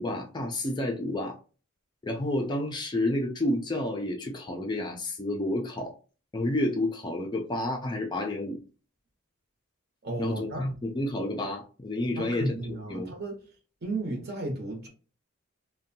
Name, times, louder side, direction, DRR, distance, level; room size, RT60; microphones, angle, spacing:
voice 1, 0.0-1.4 2.0-5.9 6.3-8.6 10.2-12.5 12.9-13.1, left 1 dB, 20° left, 0.3 m, -30 dB
voice 2, 10.0-10.7 12.2-13.4 13.8-14.9, right 2 dB, 50° right, 0.8 m, -33 dB
2.6 x 2.2 x 2.6 m
head